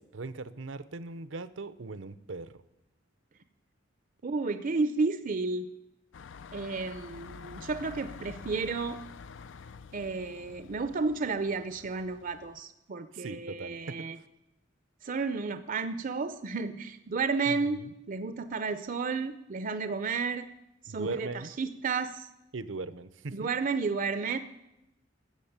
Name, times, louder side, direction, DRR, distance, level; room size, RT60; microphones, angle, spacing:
voice 1, 0.0-2.6 13.1-14.0 17.5-17.9 20.9-21.5 22.5-23.5, right 3 dB, 80° right, 14 dB, 0.7 m, -39 dB
voice 2, 4.2-5.7 6.5-9.0 9.9-14.2 15.0-20.5 20.8-21.3 21.6-22.3 23.3-24.4, right 4 dB, 45° right, 11 dB, 0.5 m, -32 dB
sound 1, 6.1-12.6, left 5 dB, 70° left, 0.5 m, -48 dB
13.5 x 7.3 x 8.7 m, 0.89 s
head